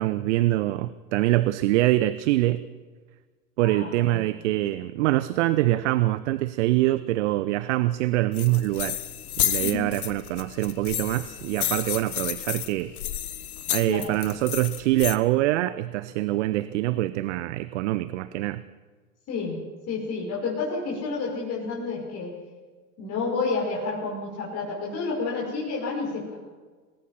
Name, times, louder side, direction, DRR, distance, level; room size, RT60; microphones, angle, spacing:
voice 1, 0.0-2.6 3.6-9.0 9.4-12.9 13.7-18.6, right 16 dB, 50° right, 14 dB, 0.9 m, -24 dB
voice 2, 3.6-4.3 9.6-9.9 13.9-14.1 19.3-22.4 23.0-26.4, left 4 dB, 35° left, -3 dB, 5.9 m, -30 dB
sound 1, 8.3-15.2, left 11 dB, 65° left, 1.4 m, -31 dB
27.5 x 19.5 x 5.9 m, 1.4 s
figure-of-eight pair, 90°, 47 cm